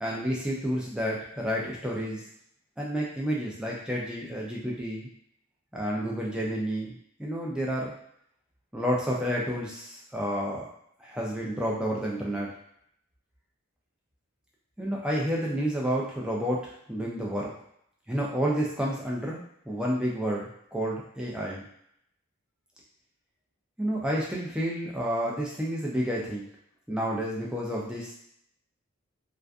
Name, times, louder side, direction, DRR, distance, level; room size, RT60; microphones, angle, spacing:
voice 1, 0.0-2.2 2.8-5.1 5.7-6.9 7.2-7.9 8.7-10.6 11.0-12.5 14.8-17.5 18.1-19.4 19.7-21.6 23.8-26.4 26.9-28.1, equal, 5° right, -4 dB, 0.4 m, -30 dB
2.5 x 2.4 x 2.3 m, 0.71 s
head